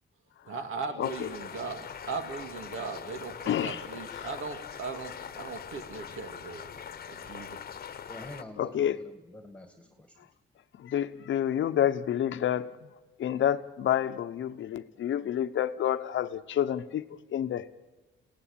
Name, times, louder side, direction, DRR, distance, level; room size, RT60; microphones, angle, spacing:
voice 1, 0.4-6.8 7.1-7.6, right 4 dB, 75° right, 2.6 m, -38 dB
sound 1, 1.0-8.4, left 7 dB, 45° left, 1.1 m, -42 dB
voice 2, 3.5-3.8 8.6-9.0 10.8-12.8 13.2-17.7, left 10 dB, 65° left, 0.9 m, -29 dB
voice 3, 8.1-10.3, left 1 dB, 5° left, 1.8 m, -47 dB
29.5 x 17.5 x 8.8 m
cardioid pair, 130°, 21 cm